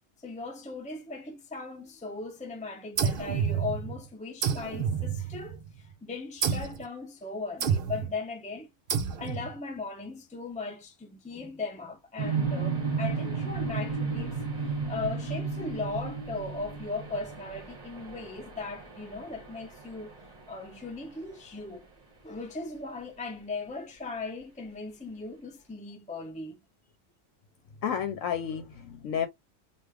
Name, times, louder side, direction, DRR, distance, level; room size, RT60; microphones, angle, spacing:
voice 1, 0.2-8.7 9.2-14.4 14.7-20.1 20.5-21.9 22.2-26.6, left 3 dB, 10° left, 0.3 m, -38 dB
sound 1, 3.0-4.0 4.4-5.7 6.4-6.8 7.6-8.1 8.9-9.5, right 7 dB, 50° right, 0.7 m, -29 dB
sound 2, 12.2-21.1, right 5 dB, 30° right, 1.3 m, -34 dB
voice 2, 27.8-29.3, left 8 dB, 80° left, 1.0 m, -31 dB
3.4 x 2.5 x 3.3 m
omnidirectional pair, 1.4 m